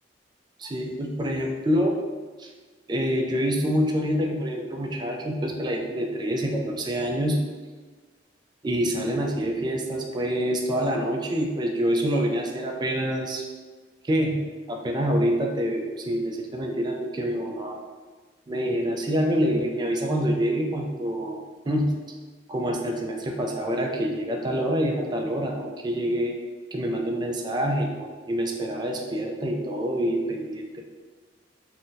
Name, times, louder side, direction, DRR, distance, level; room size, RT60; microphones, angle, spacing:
voice 1, 0.6-2.0 2.4-2.5 2.9-7.5 8.6-13.4 14.1-17.8 18.5-22.0 22.5-26.4 26.7-30.8, equal, 25° right, 1 dB, 0.3 m, -26 dB
2.6 x 2.1 x 3.8 m, 1.4 s
head